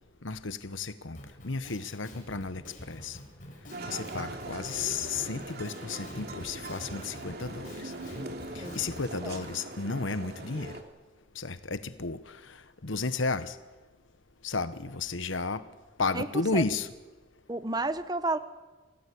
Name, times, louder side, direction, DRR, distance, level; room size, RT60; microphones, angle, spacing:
voice 1, 0.2-1.2 1.4-2.6 2.9-3.2 3.8-7.9 8.5-10.7 11.3-12.4 12.8-13.6 14.4-15.6 16.0-16.9, left 4 dB, 85° left, 1.2 m, -33 dB
Drum kit, 1.2-9.1, equal, 45° left, 7.5 m, -46 dB
sound 1, 3.7-10.8, right 2 dB, 55° right, 2.7 m, -41 dB
voice 2, 16.1-16.6 17.5-18.4, right 2 dB, 20° right, 1.2 m, -32 dB
28.0 x 17.5 x 8.6 m
head